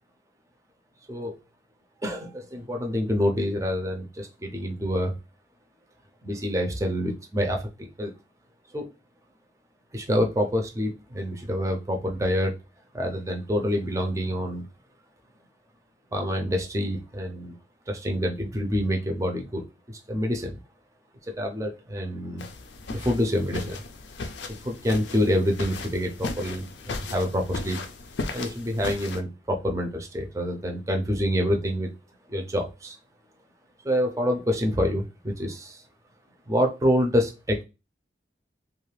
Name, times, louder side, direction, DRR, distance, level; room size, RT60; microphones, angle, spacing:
voice 1, 2.0-5.1 6.2-8.1 8.7-8.9 9.9-12.5 12.9-14.7 16.1-17.6 17.9-20.6 21.3-22.5 22.9-23.8 24.6-27.8 28.3-31.9 32.3-33.0 33.8-35.8 36.5-37.6, equal, 15° right, 3 dB, 0.5 m, -27 dB
sound 1, 22.4-29.2, left 3 dB, 80° left, 0.4 m, -36 dB
2.6 x 2.4 x 3.2 m, 0.27 s
head